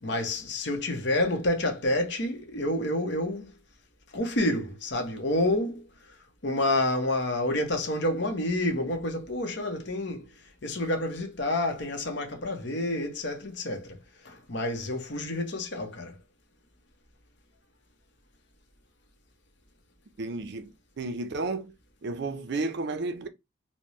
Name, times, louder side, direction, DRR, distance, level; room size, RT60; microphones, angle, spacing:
voice 1, 0.0-3.6 4.1-5.8 6.4-10.3 10.6-14.0 14.2-16.1, left 1 dB, 55° left, 0.9 m, -29 dB
voice 2, 20.2-21.7 22.0-23.3, right 3 dB, 55° right, 0.5 m, -32 dB
4.2 x 2.1 x 3.1 m
head